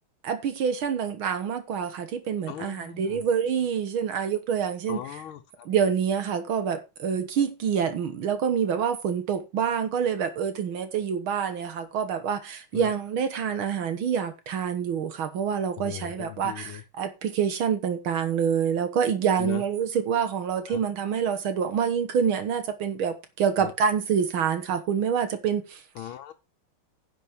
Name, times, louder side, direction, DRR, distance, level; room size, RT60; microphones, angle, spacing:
voice 1, 0.2-5.0 5.7-25.8, right 7 dB, 80° right, 2.1 m, -27 dB
voice 2, 2.5-3.2 4.9-5.7 12.7-12.9 15.8-16.8 19.4-19.6 20.7-20.8 23.6-23.7 26.0-26.3, left 12 dB, 85° left, 1.7 m, -38 dB
11.0 x 8.6 x 4.5 m
omnidirectional pair, 2.2 m